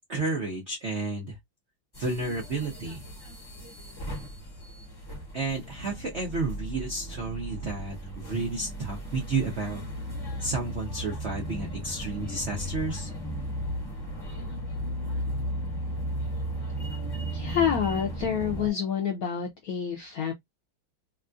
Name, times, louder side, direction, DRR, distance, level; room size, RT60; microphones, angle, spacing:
voice 1, 0.1-1.4 2.0-3.0 5.3-9.8 10.4-13.1, right 3 dB, 90° right, 0.5 m, -31 dB
sound 1, 1.9-18.7, equal, 20° left, 0.7 m, -35 dB
voice 2, 17.3-20.3, left 8 dB, 75° left, 0.8 m, -28 dB
3.5 x 2.3 x 2.5 m
omnidirectional pair, 2.2 m